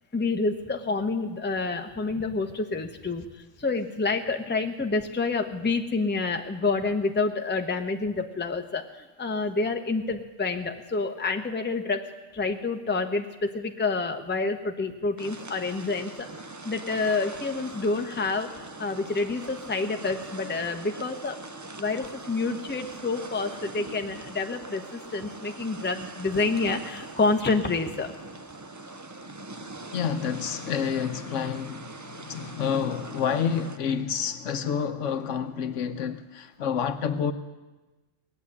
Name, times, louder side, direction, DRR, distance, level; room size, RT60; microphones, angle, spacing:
voice 1, 0.1-3.3 3.6-12.1 12.3-16.3 16.6-18.5 18.8-21.4 21.8-28.1, left 3 dB, 10° left, 0.7 m, -28 dB
sound 1, 15.2-33.8, right 2 dB, 25° right, 0.4 m, -42 dB
voice 2, 29.9-37.3, left 7 dB, 75° left, 1.1 m, -29 dB
18.5 x 7.9 x 9.7 m
omnidirectional pair, 1.3 m